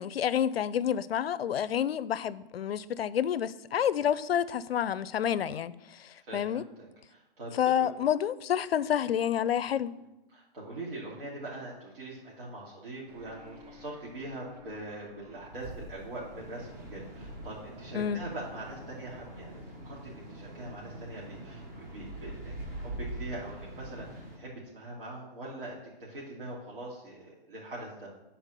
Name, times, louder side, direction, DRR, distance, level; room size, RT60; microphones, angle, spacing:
voice 1, 0.0-6.6 7.5-10.0 17.9-18.2, left 9 dB, 80° left, 0.5 m, -29 dB
voice 2, 6.3-7.9 10.3-19.6 19.8-28.1, right 2 dB, 65° right, 2.9 m, -42 dB
sound 1, 13.1-19.6, equal, 40° right, 1.5 m, -54 dB
sound 2, 15.4-24.4, right 1 dB, 15° right, 0.8 m, -43 dB
9.1 x 4.3 x 6.6 m
hypercardioid pair, 170°, 30 cm